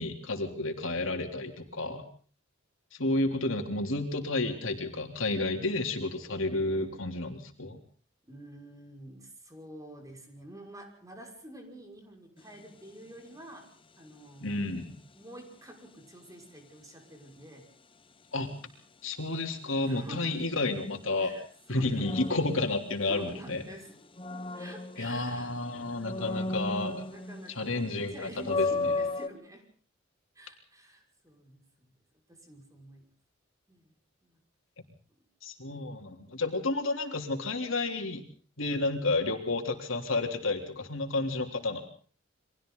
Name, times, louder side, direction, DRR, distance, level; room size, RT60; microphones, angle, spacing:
voice 1, 0.0-2.0 2.9-7.8 14.4-15.0 18.3-18.5 19.0-21.3 21.7-23.6 25.0-27.0 27.5-28.9 35.4-38.2 38.6-41.8, left 2 dB, 80° left, 4 dB, 3.5 m, -31 dB
voice 2, 8.3-13.7 14.0-14.7 15.1-17.7 19.8-20.5 21.2-21.4 21.7-22.1 23.1-23.9 24.5-26.7 27.1-29.7 30.3-31.9 32.3-33.0 33.7-33.9 34.2-34.4 35.6-35.8 36.2-36.4, right 1 dB, 15° right, 3 dB, 5.7 m, -48 dB
sound 1, 12.4-12.7 22.0-23.4 23.9-25.5 26.0-27.6 27.9-28.0 28.4-29.3, left 3 dB, 25° left, 1.0 m, -34 dB
30.0 x 23.5 x 4.0 m, 0.43 s
head